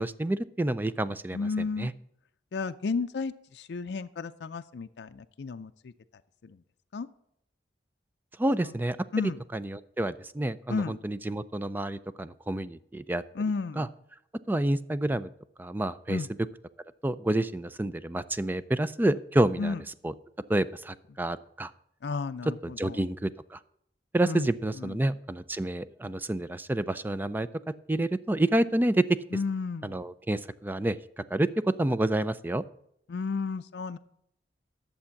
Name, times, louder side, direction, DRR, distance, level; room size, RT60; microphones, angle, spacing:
voice 1, 0.0-1.4 1.8-1.9 8.4-9.0 9.5-13.2 13.8-13.9 14.5-15.3 15.6-16.2 17.0-19.7 20.0-20.1 20.5-21.7 22.6-23.6 24.1-27.5 27.9-29.0 29.8-31.0 31.3-32.6, right 1 dB, 10° right, 15 dB, 0.3 m, -28 dB
voice 2, 1.3-1.9 2.5-5.9 6.4-6.6 6.9-7.1 8.6-8.7 9.1-9.4 10.7-11.0 13.3-13.9 16.1-16.3 19.6-19.8 22.0-23.0 24.2-24.5 24.8-25.0 29.3-30.1 33.1-34.0, left 4 dB, 70° left, 8 dB, 0.4 m, -33 dB
11.0 x 6.9 x 5.8 m, 0.74 s
head